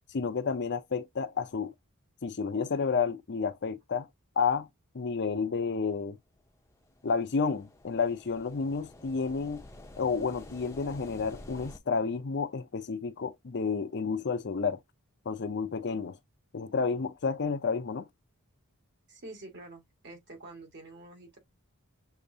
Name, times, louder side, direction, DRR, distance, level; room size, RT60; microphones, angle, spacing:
voice 1, 0.1-1.7 2.2-4.1 4.4-4.7 4.9-6.2 7.0-9.6 10.0-14.8 15.3-16.2 16.5-18.0, left 5 dB, 50° left, 0.6 m, -30 dB
sound 1, 6.5-11.8, left 1 dB, 15° left, 0.7 m, -50 dB
voice 2, 19.1-21.4, right 2 dB, 50° right, 1.8 m, -47 dB
6.7 x 2.8 x 2.7 m
head